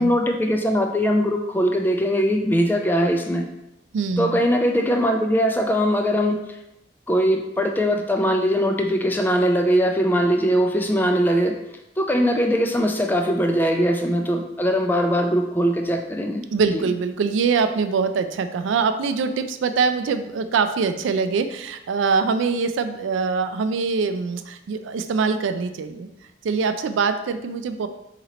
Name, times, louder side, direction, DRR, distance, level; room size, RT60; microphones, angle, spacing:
voice 1, 0.0-3.5 4.2-6.4 7.1-11.6 12.0-16.4 16.7-16.8, equal, 10° left, 3 dB, 0.3 m, -21 dB
voice 2, 3.9-4.4 16.5-26.1 26.4-27.9, right 5 dB, 85° right, 9 dB, 0.3 m, -23 dB
4.3 x 2.9 x 3.9 m, 0.89 s
head